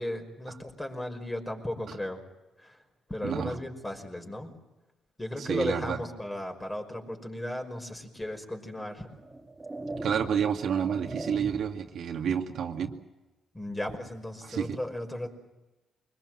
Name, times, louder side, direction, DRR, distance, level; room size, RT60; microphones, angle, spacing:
voice 1, 0.0-2.2 2.6-2.8 3.1-4.5 5.2-9.1 13.5-15.3, left 1 dB, 15° left, 3 dB, 5.5 m, -35 dB
voice 2, 3.2-3.5 5.4-6.0 10.0-12.9 14.4-14.8, right 7 dB, 65° right, 3 dB, 2.2 m, -29 dB
sound 1, 8.2-8.4 9.1-11.9, right 2 dB, 20° right, 2.5 m, -40 dB
24.5 x 21.0 x 7.8 m, 1.1 s
cardioid pair, 90°, 0 cm